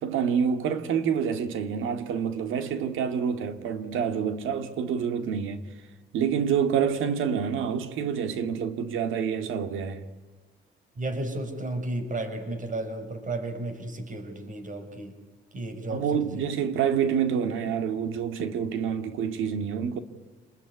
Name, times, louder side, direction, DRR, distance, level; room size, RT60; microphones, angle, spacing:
voice 1, 0.0-5.6 6.1-10.0 15.9-20.0, right 7 dB, 90° right, 2.1 m, -27 dB
voice 2, 11.0-15.1 15.5-16.4, right 2 dB, 40° right, 5.5 m, -33 dB
28.0 x 21.0 x 9.6 m
cardioid pair, 90°, 20 cm